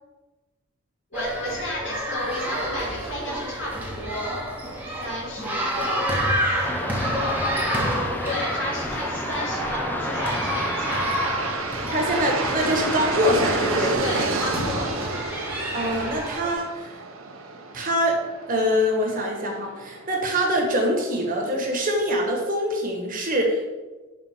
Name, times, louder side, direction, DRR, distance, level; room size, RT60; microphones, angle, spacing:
voice 1, 1.1-4.3 5.0-6.7 7.7-11.1 13.8-14.9, left 1 dB, 60° left, -4 dB, 2.3 m, -33 dB
sound 1, 1.1-16.6, equal, 10° right, 1.0 m, -29 dB
sound 2, 6.6-14.0, left 1 dB, 10° left, 0.4 m, -32 dB
Aircraft, 9.8-20.9, right 4 dB, 85° right, 0.8 m, -31 dB
voice 2, 11.9-14.0 15.7-16.9 17.7-18.2 18.5-23.6, equal, 40° right, 0 dB, 1.3 m, -24 dB
5.6 x 4.0 x 5.8 m, 1.2 s
head